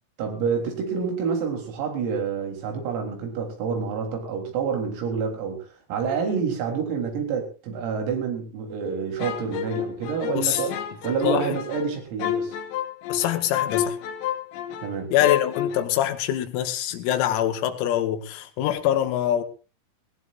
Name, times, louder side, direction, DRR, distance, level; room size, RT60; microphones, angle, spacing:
voice 1, 0.2-10.7 11.0-12.6 14.8-15.1, right 6 dB, 90° right, 6.3 m, -28 dB
sound 1, 9.2-14.9 15.2-15.8, left 10 dB, 70° left, 3.2 m, -29 dB
voice 2, 10.4-10.7 11.2-11.6 13.1-14.0 15.1-19.4, left 11 dB, 85° left, 4.1 m, -24 dB
19.5 x 19.0 x 2.6 m
omnidirectional pair, 5.9 m